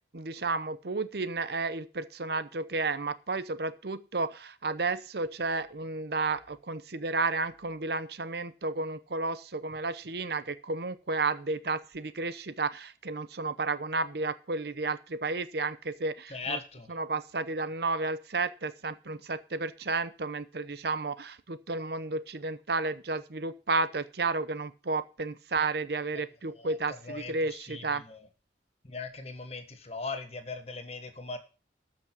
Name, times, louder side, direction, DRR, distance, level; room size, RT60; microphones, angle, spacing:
voice 1, 0.1-16.6 16.9-28.0, right 3 dB, 60° right, 14 dB, 0.8 m, -32 dB
voice 2, 16.3-16.9 26.6-26.7 27.0-28.2 28.8-31.4, left 3 dB, 35° left, 8 dB, 1.5 m, -39 dB
13.5 x 6.3 x 6.0 m, 0.34 s
head